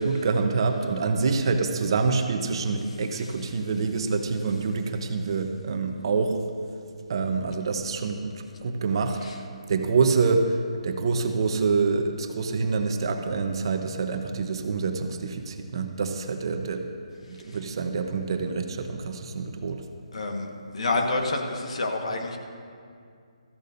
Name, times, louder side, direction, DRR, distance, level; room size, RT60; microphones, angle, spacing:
voice 1, 0.0-6.4 7.1-9.3 9.7-10.6 10.8-16.9 17.3-19.8, right 4 dB, 45° right, 5 dB, 0.9 m, -26 dB
voice 2, 20.1-22.4, left 2 dB, 65° left, 2 dB, 1.4 m, -28 dB
16.0 x 14.0 x 2.6 m, 2.3 s
hypercardioid pair, 160°, 4 cm